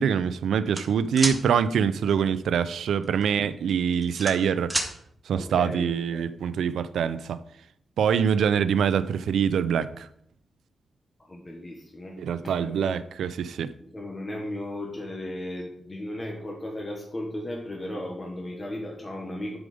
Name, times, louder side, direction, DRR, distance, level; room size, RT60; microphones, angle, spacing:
voice 1, 0.0-4.7 5.3-7.4 8.0-10.1 12.2-13.7, right 7 dB, 90° right, 0.5 m, -24 dB
sound 1, 0.7-1.4 3.0-3.3 3.7-4.9, right 1 dB, 10° right, 1.8 m, -28 dB
voice 2, 5.3-6.3 11.2-13.0 13.9-19.6, left 1 dB, 20° left, 1.4 m, -36 dB
11.5 x 5.0 x 5.1 m
wide cardioid pair, 140°, 0 cm